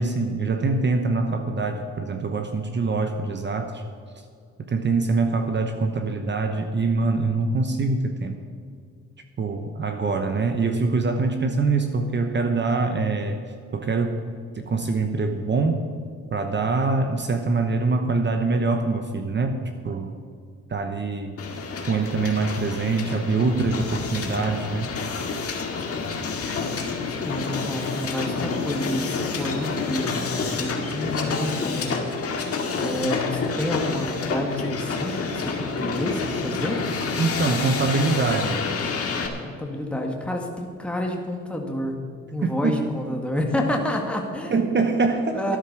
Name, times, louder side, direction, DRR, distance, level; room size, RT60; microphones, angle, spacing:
voice 1, 0.0-3.8 4.7-8.4 9.4-13.4 13.7-14.2 14.5-15.9 16.3-20.1 20.7-21.4 21.9-24.9 37.2-38.6 42.4-42.8 44.5-45.4, right 3 dB, 35° right, 6 dB, 1.1 m, -24 dB
Hiss, 21.4-39.3, left 4 dB, 50° left, 2.0 m, -28 dB
voice 2, 27.3-32.4 32.7-36.8 39.4-42.0 42.3-44.6 45.3-45.6, left 1 dB, 5° left, 1 dB, 1.8 m, -29 dB
12.5 x 10.5 x 6.1 m, 2.3 s
cardioid pair, 90°, 30 cm